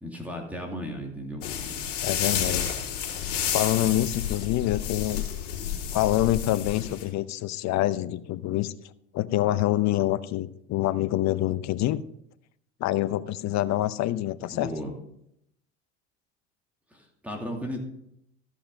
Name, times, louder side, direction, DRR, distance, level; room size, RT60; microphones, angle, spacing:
voice 1, 0.0-1.4 14.5-14.9 16.9-17.8, equal, 5° right, 0 dB, 2.5 m, -35 dB
sound 1, 1.4-7.0, left 8 dB, 75° left, 3.3 m, -30 dB
voice 2, 2.0-2.7 3.5-5.2 5.9-8.7 9.1-12.0 12.8-14.7, left 14 dB, 45° left, 15 dB, 0.7 m, -26 dB
14.0 x 5.8 x 5.4 m, 0.78 s
hypercardioid pair, 80°, 37 cm